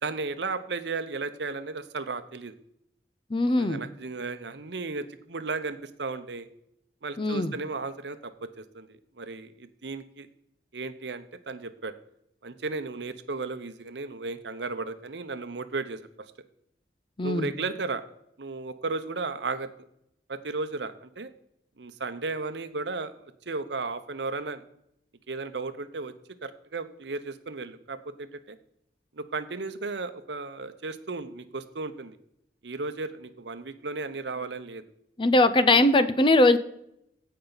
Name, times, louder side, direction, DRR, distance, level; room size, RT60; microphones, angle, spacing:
voice 1, 0.0-2.5 3.5-6.5 7.0-10.3 10.7-11.9 12.4-16.0 17.2-18.0 18.4-19.7 20.3-21.3 21.8-23.1 23.5-24.6 25.3-26.1 26.4-28.6 29.1-32.2 32.6-34.8 35.7-35.9, right 3 dB, 75° right, 11 dB, 0.8 m, -34 dB
voice 2, 3.3-3.8 7.2-7.5 17.2-17.5 35.2-36.6, left 2 dB, 30° left, 13 dB, 0.6 m, -21 dB
15.5 x 5.6 x 4.0 m, 0.75 s
head